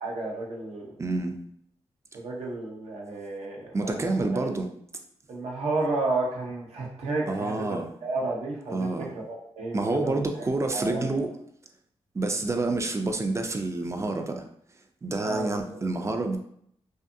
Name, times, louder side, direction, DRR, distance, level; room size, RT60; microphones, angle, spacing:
voice 1, 0.0-0.9 2.1-4.4 5.3-10.5 10.7-11.3 15.2-15.8, right 2 dB, 70° right, -2 dB, 0.8 m, -32 dB
voice 2, 1.0-1.4 3.7-4.7 7.3-7.9 8.7-9.1 9.7-11.3 12.1-14.5 15.0-16.4, right 2 dB, 25° right, 5 dB, 0.4 m, -28 dB
2.5 x 2.4 x 2.6 m, 0.69 s
cardioid pair, 60°, 11 cm